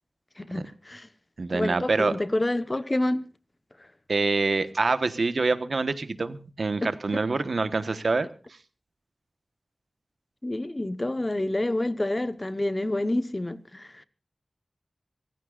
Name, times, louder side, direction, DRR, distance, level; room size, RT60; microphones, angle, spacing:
voice 1, 0.4-1.1 1.5-3.2 6.8-6.9 10.4-14.0, left 1 dB, 25° left, 1.0 m, -28 dB
voice 2, 1.4-2.2 4.1-8.3, right 3 dB, 70° right, 1.2 m, -26 dB
26.0 x 15.5 x 2.5 m
wide cardioid pair, 70°, 0 cm